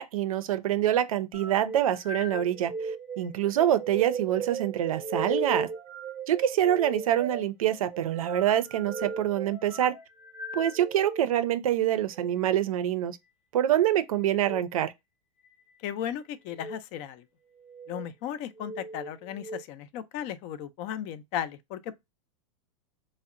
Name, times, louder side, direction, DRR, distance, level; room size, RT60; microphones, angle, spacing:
voice 1, 0.0-2.7 3.2-5.7 6.3-9.9 10.5-13.2 13.5-14.9, right 11 dB, 90° right, 0.4 m, -25 dB
sound 1, 1.3-11.3 12.0-12.3 14.3-14.6 15.4-16.0 16.5-16.8 17.6-18.1 18.6-19.6, right 4 dB, 15° right, 0.6 m, -37 dB
voice 2, 15.8-17.2 17.9-22.0, left 10 dB, 40° left, 0.4 m, -36 dB
2.7 x 2.0 x 2.4 m
hypercardioid pair, 130°, 17 cm